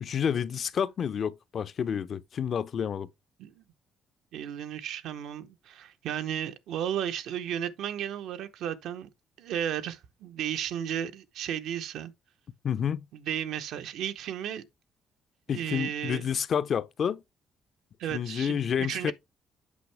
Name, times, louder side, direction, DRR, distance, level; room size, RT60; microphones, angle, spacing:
voice 1, 0.0-3.1 12.6-13.0 15.5-17.2 18.1-19.1, left 8 dB, 55° left, 0.6 m, -29 dB
voice 2, 4.3-9.1 9.4-12.1 13.1-14.6 15.5-16.3 18.0-19.1, right 9 dB, 80° right, 0.9 m, -34 dB
8.4 x 5.5 x 3.4 m
cardioid pair, 85°, 0 cm